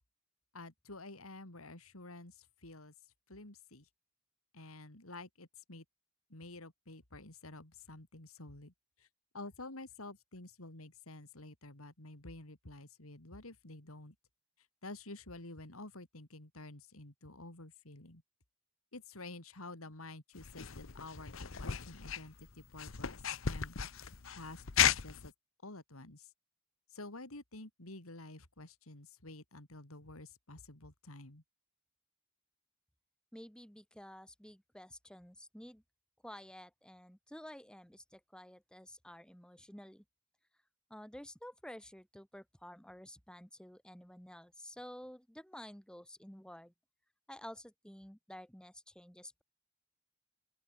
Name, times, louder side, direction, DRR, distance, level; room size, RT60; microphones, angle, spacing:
voice 1, 0.5-2.3 2.6-2.9 3.3-3.9 4.5-5.8 6.3-8.7 9.3-14.1 14.8-18.2 18.9-23.8 24.3-25.3 25.6-26.3 26.9-31.4, left 2 dB, 85° left, 3.6 m, -50 dB
sound 1, 20.4-25.3, left 8 dB, 70° left, 1.0 m, -35 dB
voice 2, 33.3-35.8 36.2-40.0 40.9-46.7 47.3-49.4, left 1 dB, 5° left, 2.0 m, -51 dB
open air
head